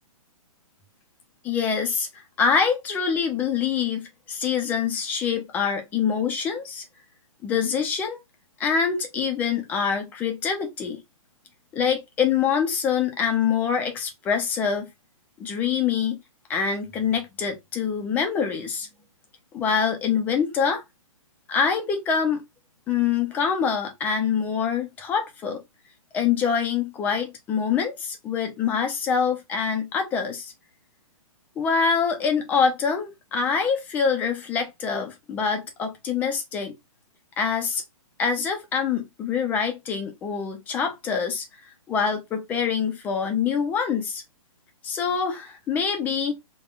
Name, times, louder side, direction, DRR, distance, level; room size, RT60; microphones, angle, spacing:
voice 1, 1.4-6.8 7.4-8.2 8.6-11.0 11.7-14.9 15.4-16.2 16.5-18.9 19.5-20.8 21.5-22.4 22.9-25.6 26.1-30.5 31.6-36.7 37.4-37.8 38.2-41.4 41.9-44.2 44.8-46.4, left 6 dB, 10° left, 0.3 m, -25 dB
3.5 x 2.1 x 2.3 m
hypercardioid pair, 150°, 18 cm